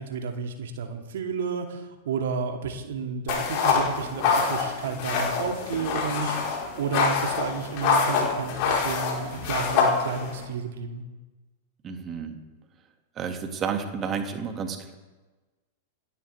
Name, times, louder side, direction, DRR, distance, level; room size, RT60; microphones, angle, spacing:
voice 1, 0.0-11.0, right 5 dB, 60° right, 4 dB, 2.5 m, -32 dB
sound 1, 3.3-10.5, left 5 dB, 45° left, 4.4 m, -26 dB
voice 2, 11.8-12.4 13.2-15.0, right 6 dB, 25° right, 5 dB, 2.2 m, -31 dB
29.0 x 12.0 x 3.5 m, 1.2 s
figure-of-eight pair, 95°, 0 cm